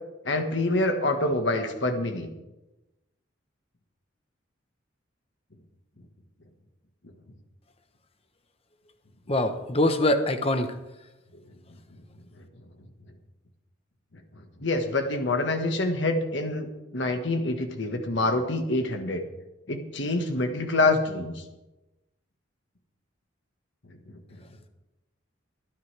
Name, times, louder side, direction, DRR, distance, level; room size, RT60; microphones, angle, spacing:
voice 1, 0.2-2.3 14.6-19.2 19.7-21.4, left 2 dB, 65° left, 5 dB, 1.5 m, -26 dB
voice 2, 9.3-10.7, left 1 dB, 30° left, 7 dB, 1.0 m, -23 dB
24.0 x 9.5 x 3.4 m, 1.0 s
head